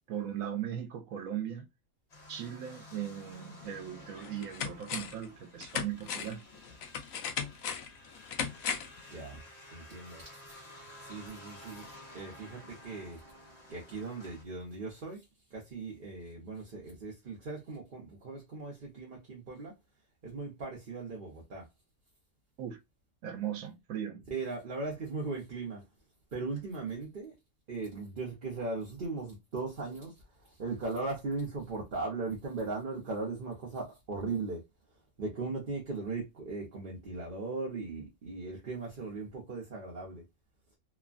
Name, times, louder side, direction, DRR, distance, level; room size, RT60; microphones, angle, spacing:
voice 1, 0.1-1.7 2.3-6.4 22.6-22.8 23.2-24.2, right 10 dB, 75° right, 1.1 m, -38 dB
sound 1, 2.1-14.4, left 1 dB, 50° left, 1.4 m, -53 dB
sound 2, 3.6-3.7 4.2-5.3 5.6-9.0 9.3-9.4, left 7 dB, 75° left, 0.9 m, -37 dB
voice 2, 9.1-9.4 9.7-10.6 11.0-11.9 12.1-13.2 13.7-15.2 15.5-19.7 20.2-21.7 24.3-25.8 26.3-27.4 27.7-34.6 35.2-40.2, right 3 dB, 45° right, 0.9 m, -38 dB
3.0 x 2.2 x 2.4 m
omnidirectional pair, 1.5 m